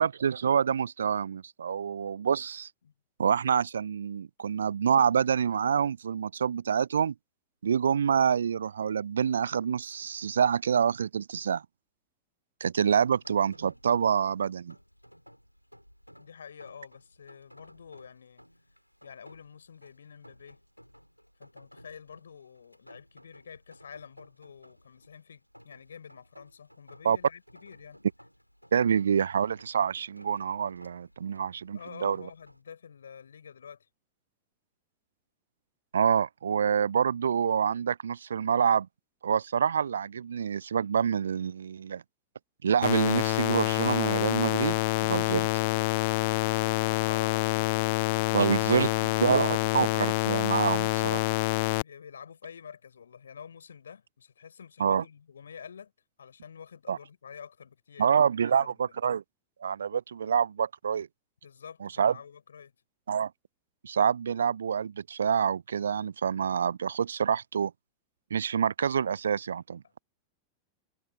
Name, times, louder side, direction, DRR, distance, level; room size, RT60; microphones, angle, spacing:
voice 1, 0.0-2.7 3.2-7.1 7.6-11.6 12.6-14.7 27.0-27.2 28.7-32.2 35.9-38.9 39.2-42.0 42.6-45.5 48.3-48.9 49.2-51.2 54.8-55.0 56.9-57.0 58.0-59.2 59.6-61.1 62.0-62.1 63.1-63.3 63.8-67.7 68.3-69.8, right 7 dB, 70° right, 0.4 m, -27 dB
Rain, 12.8-32.6, equal, 90° left, 5.5 m, -56 dB
voice 2, 16.2-18.4 19.0-20.6 21.4-28.0 31.7-33.9 51.7-55.9 56.2-58.8 61.4-62.7 69.8-70.0, left 7 dB, 70° left, 5.3 m, -48 dB
sound 1, 42.8-51.8, left 23 dB, 50° left, 0.4 m, -27 dB
figure-of-eight pair, 90°, 0 cm